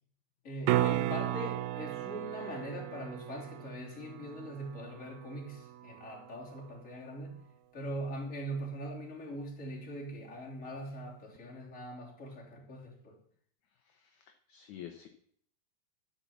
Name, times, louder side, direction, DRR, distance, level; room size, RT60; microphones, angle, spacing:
voice 1, 0.4-7.4 7.7-13.2, right 1 dB, 20° left, -3 dB, 2.9 m, -42 dB
sound 1, 0.6-6.7 11.4-11.5, right 14 dB, 80° right, 2.3 m, -35 dB
voice 2, 13.9-15.1, left 11 dB, 70° left, 6 dB, 1.9 m, -49 dB
12.0 x 7.4 x 7.3 m, 0.63 s
omnidirectional pair, 4.4 m